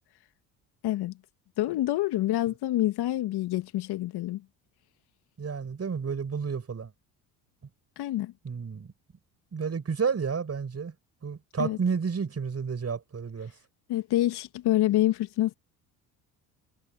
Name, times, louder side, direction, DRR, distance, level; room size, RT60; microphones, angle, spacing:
voice 1, 0.8-1.1 1.6-4.4 8.0-8.3 11.6-11.8 13.9-15.5, left 15 dB, 60° left, 2.1 m, -27 dB
voice 2, 5.4-6.9 8.4-8.9 9.5-10.9 11.2-13.5, right 5 dB, 35° right, 6.0 m, -31 dB
hypercardioid pair, 60°, 43 cm